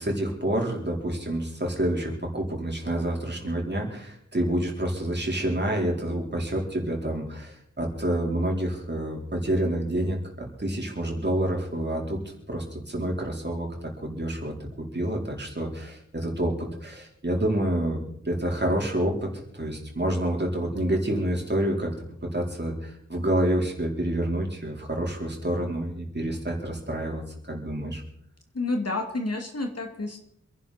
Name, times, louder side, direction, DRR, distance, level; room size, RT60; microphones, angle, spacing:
voice 1, 0.0-12.2 12.5-14.5 14.9-19.3 19.6-21.9 22.3-28.0, right 1 dB, 35° right, -1 dB, 4.2 m, -28 dB
voice 2, 28.5-30.2, left 2 dB, 55° left, 4 dB, 2.4 m, -29 dB
27.0 x 11.0 x 4.3 m, 0.70 s
wide cardioid pair, 80°, 29 cm